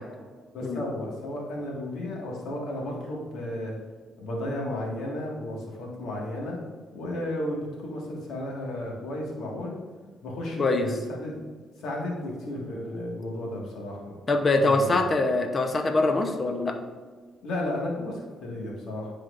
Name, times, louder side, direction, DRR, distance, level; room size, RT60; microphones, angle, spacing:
voice 1, 0.5-3.7 4.2-6.6 6.9-9.8 10.2-11.4 11.8-14.2 14.6-15.1 17.4-19.1, left 1 dB, 75° left, -2 dB, 1.7 m, -33 dB
voice 2, 14.3-16.8, left 2 dB, 35° left, 6 dB, 0.7 m, -23 dB
9.9 x 4.5 x 2.5 m, 1.5 s
cardioid pair, 90°, 0 cm